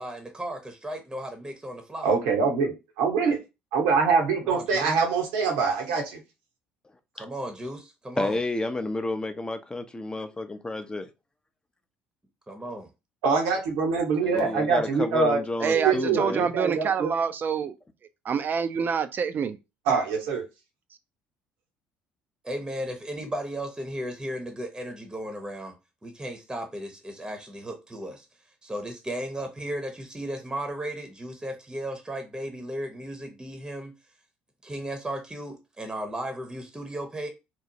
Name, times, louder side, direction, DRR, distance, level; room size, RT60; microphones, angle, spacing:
voice 1, 0.0-2.1 4.4-4.9 7.1-8.4 12.5-12.9 14.2-14.6 22.4-25.7 26.0-28.3 28.6-33.9 34.6-37.3, right 1 dB, 15° right, 0.7 m, -35 dB
voice 2, 2.0-3.4 3.7-6.2 13.2-15.4 15.7-17.1 19.9-20.4, right 5 dB, 70° right, 0.9 m, -24 dB
voice 3, 8.2-11.1 14.2-16.5, left 2 dB, 15° left, 0.5 m, -30 dB
voice 4, 15.6-17.8 18.2-19.6, right 6 dB, 40° right, 0.4 m, -26 dB
2.9 x 2.0 x 2.7 m
hypercardioid pair, 55°, 5 cm